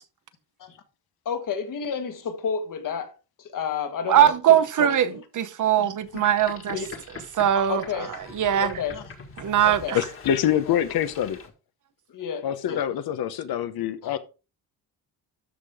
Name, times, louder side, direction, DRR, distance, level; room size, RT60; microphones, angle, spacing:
voice 1, 1.2-5.2 5.8-6.2 6.7-6.9 7.7-8.3 8.6-9.0 9.6-10.0 10.7-10.8 12.1-12.8 14.0-14.1, left 6 dB, 55° left, 1.6 m, -32 dB
voice 2, 4.1-6.8 7.3-7.8 8.3-8.7 9.4-10.0, right 10 dB, 55° right, 0.9 m, -21 dB
Boat Water vehicle, 6.1-11.5, left 4 dB, 35° left, 1.8 m, -43 dB
voice 3, 9.9-11.4 12.4-14.2, left 10 dB, 75° left, 1.0 m, -25 dB
12.5 x 5.3 x 3.6 m
cardioid pair, 155°, 37 cm